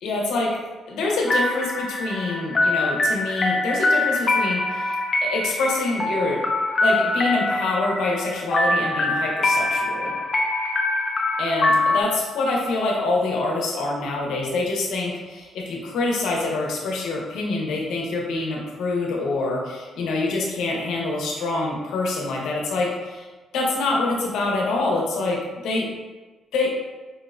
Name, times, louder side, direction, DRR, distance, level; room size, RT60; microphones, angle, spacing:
voice 1, 0.0-0.5 0.9-4.9 5.2-6.4 6.8-10.1 11.4-23.3 23.5-25.4 25.6-25.9 26.5-26.7, left 2 dB, 85° left, -2 dB, 0.7 m, -25 dB
sound 1, 1.3-12.0, left 2 dB, 35° left, 0.4 m, -23 dB
4.4 x 2.0 x 2.3 m, 1.2 s
cardioid pair, 90°, 0 cm